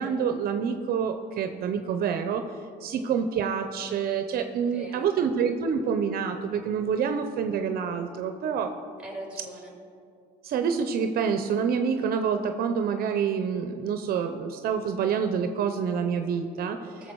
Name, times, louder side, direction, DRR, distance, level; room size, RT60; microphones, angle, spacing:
voice 1, 0.0-2.4 2.8-8.7 10.4-16.8, right 6 dB, 65° right, 7 dB, 0.7 m, -27 dB
voice 2, 2.7-3.1 4.5-5.1 9.0-9.8 16.8-17.1, right 1 dB, 5° right, -1 dB, 3.0 m, -42 dB
17.0 x 6.9 x 4.7 m, 2.4 s
cardioid pair, 110°, 17 cm